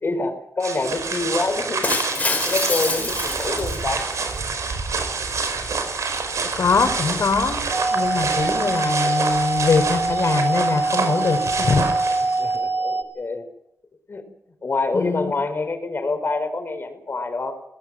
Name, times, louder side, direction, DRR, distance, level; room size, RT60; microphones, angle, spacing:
voice 1, 0.0-1.9 2.3-4.1 5.5-5.6 12.3-13.5 14.1-14.2 14.6-17.5, left 3 dB, 45° left, 7 dB, 4.6 m, -26 dB
sound 1, 0.6-12.6, right 4 dB, 85° right, 4.9 m, -27 dB
Shatter, 1.8-4.2, left 2 dB, 30° left, 4.4 m, -26 dB
voice 2, 6.6-7.6 7.9-11.9 14.9-15.3, left 5 dB, 70° left, 8 dB, 4.6 m, -22 dB
sound 2, 7.7-13.0, right 3 dB, 40° right, 4.0 m, -24 dB
22.0 x 18.5 x 7.7 m, 0.84 s
wide cardioid pair, 110°, 5 cm